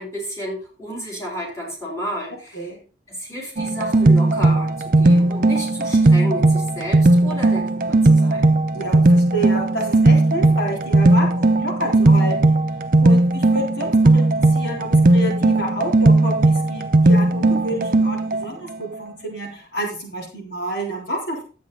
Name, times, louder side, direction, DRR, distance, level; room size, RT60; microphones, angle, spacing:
voice 1, 0.0-2.7 3.1-8.5, equal, 15° left, -4 dB, 4.2 m, -32 dB
sound 1, 3.6-18.4, right 2 dB, 50° right, 0.7 m, -16 dB
voice 2, 8.7-12.5 13.0-21.4, right 1 dB, 75° left, -1 dB, 3.7 m, -29 dB
11.0 x 8.4 x 3.9 m, 0.36 s
head